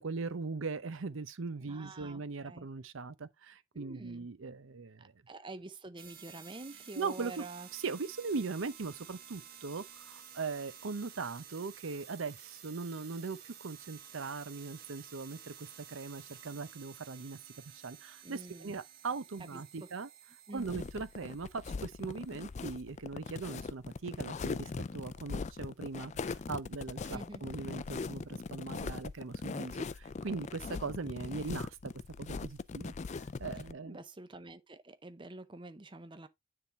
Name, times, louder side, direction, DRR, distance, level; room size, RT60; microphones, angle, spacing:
voice 1, 0.0-5.1 7.0-7.4 7.7-17.4 17.6-20.1 20.5-31.9 32.2-32.9 33.4-34.0, right 4 dB, 75° right, 0.7 m, -40 dB
voice 2, 1.6-2.6 3.7-4.3 5.0-7.7 17.2-17.3 18.2-18.8 19.5-19.6 20.5-20.9 27.1-27.4 33.8-36.3, right 2 dB, 25° right, 0.6 m, -47 dB
sound 1, 6.0-22.5, right 9 dB, 50° right, 1.3 m, -53 dB
sound 2, 20.6-33.7, left 4 dB, 35° left, 0.3 m, -40 dB
9.6 x 3.7 x 4.1 m
head